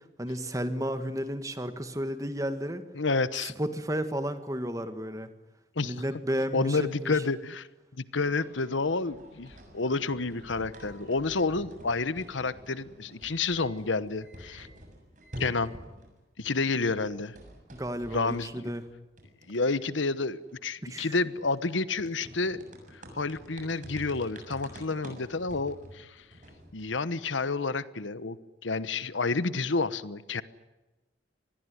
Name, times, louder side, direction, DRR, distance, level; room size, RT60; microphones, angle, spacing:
voice 1, 0.0-2.8 3.4-5.3 5.8-7.2 17.7-18.9 20.8-21.2, equal, 15° right, 10 dB, 1.7 m, -33 dB
voice 2, 2.9-3.5 5.8-5.9 6.5-7.7 8.1-14.7 15.4-15.7 16.4-17.3 18.1-18.5 19.5-22.6 23.1-26.2 26.7-28.4 28.6-30.4, left 3 dB, 80° left, 16 dB, 1.1 m, -29 dB
sound 1, 8.1-16.1 16.4-27.0, equal, 40° right, 7.1 m, -49 dB
25.5 x 20.5 x 9.6 m, 1.1 s
head